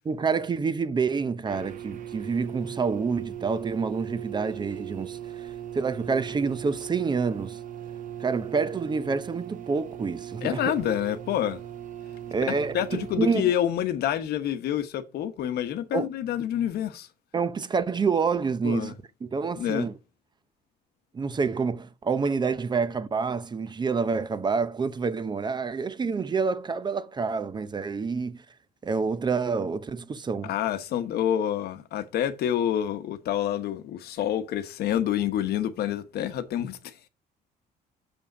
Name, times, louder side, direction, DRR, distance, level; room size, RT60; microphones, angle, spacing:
voice 1, 0.0-7.6 8.2-10.7 12.3-13.5 15.9-16.1 17.3-18.9 19.2-19.9 21.1-28.4 28.8-30.5, right 5 dB, 25° right, 0.6 m, -28 dB
sound 1, 1.5-13.2, right 10 dB, 50° right, 0.9 m, -39 dB
voice 2, 10.4-11.6 12.5-17.1 18.6-18.9 19.6-19.9 30.4-37.1, left 10 dB, 70° left, 1.0 m, -28 dB
7.0 x 5.2 x 4.9 m
cardioid pair, 110°, 17 cm